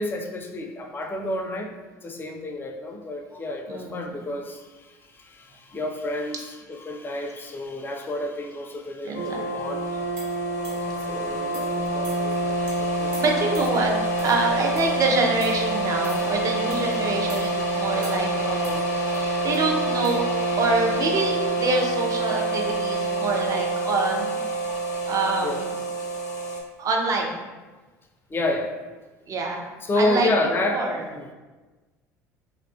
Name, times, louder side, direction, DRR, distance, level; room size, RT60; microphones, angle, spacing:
voice 1, 0.0-10.0 11.0-13.2 25.4-25.6 26.3-26.5 28.3-28.7 29.8-30.9 31.1-31.3, left 1 dB, 25° left, 4 dB, 0.4 m, -30 dB
voice 2, 3.7-4.2 9.0-9.4 13.2-24.4 25.1-25.7 26.8-27.5 29.3-29.6 30.0-30.3 30.6-31.0, right 3 dB, 40° right, 1 dB, 0.5 m, -26 dB
sound 1, 9.1-26.6, right 2 dB, 80° left, 0.5 m, -26 dB
sound 2, 10.2-11.0 11.5-11.8 12.0-12.4 12.7-12.8 13.1-13.8 14.2-14.4 14.8-15.0 15.4-15.6 16.0-16.3 16.7-16.9 17.3-17.5 18.0-18.4 18.6-19.7 20.0-20.2, right 2 dB, 65° right, 0.9 m, -44 dB
2.9 x 2.2 x 2.5 m, 1.2 s
hypercardioid pair, 65°, 9 cm